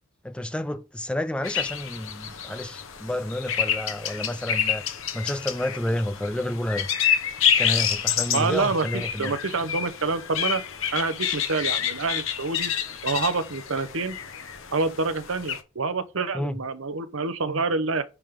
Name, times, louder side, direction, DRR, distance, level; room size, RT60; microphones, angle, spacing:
voice 1, 0.2-4.8 5.1-6.9 7.6-9.3 16.3-16.6, left 1 dB, 5° left, 0.4 m, -30 dB
sound 1, 1.4-15.6, left 8 dB, 65° left, 1.1 m, -28 dB
voice 2, 8.3-10.6 10.9-12.7 13.0-14.2 14.7-18.0, right 4 dB, 70° right, 1.0 m, -27 dB
10.5 x 3.8 x 5.2 m
head